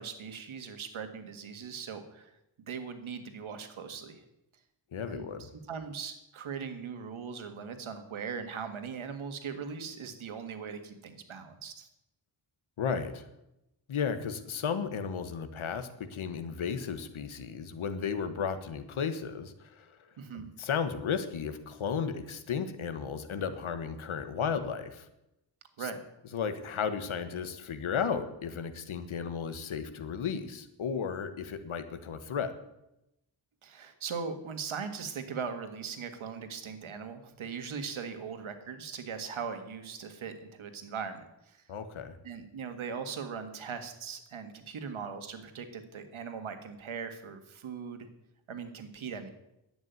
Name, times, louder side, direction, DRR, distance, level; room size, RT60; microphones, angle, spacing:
voice 1, 0.0-2.3 2.6-4.2 5.0-11.9 20.2-20.5 25.8-26.0 33.6-41.6 42.2-48.1 48.5-49.3, right 6 dB, 90° right, 8 dB, 1.9 m, -40 dB
voice 2, 4.9-5.5 12.8-13.2 13.9-19.9 20.3-25.0 25.8-25.9 26.3-32.5 41.7-42.1, left 6 dB, 85° left, 10 dB, 1.5 m, -34 dB
11.0 x 8.9 x 9.3 m, 0.87 s
wide cardioid pair, 105°, 47 cm